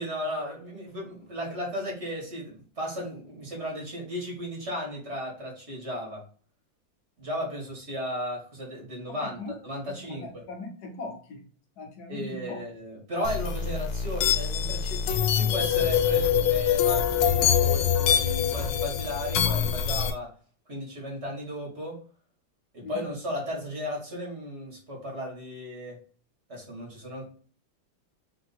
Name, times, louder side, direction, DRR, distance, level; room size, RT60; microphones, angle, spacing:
voice 1, 0.0-6.2 7.2-10.4 12.1-20.3 20.7-22.0 22.7-26.0 26.5-27.3, equal, 35° right, -2 dB, 1.6 m, -35 dB
voice 2, 9.2-9.6 10.0-11.4 11.8-12.6 22.8-23.0, left 3 dB, 60° left, 2 dB, 1.3 m, -39 dB
sound 1, 13.2-20.1, left 8 dB, 90° left, 1.5 m, -24 dB
3.6 x 2.8 x 4.1 m, 0.41 s
omnidirectional pair, 2.3 m